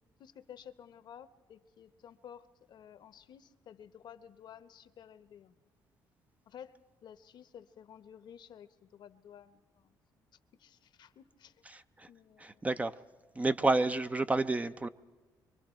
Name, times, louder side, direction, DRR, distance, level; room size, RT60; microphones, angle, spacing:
voice 1, 0.2-5.6 6.5-10.0 10.5-11.6 12.1-12.7 13.6-13.9, left 9 dB, 65° left, 0.9 m, -53 dB
voice 2, 11.7-12.1 12.4-12.9 13.3-14.9, right 2 dB, 15° right, 0.5 m, -30 dB
24.5 x 24.0 x 4.4 m
cardioid pair, 100°, 8 cm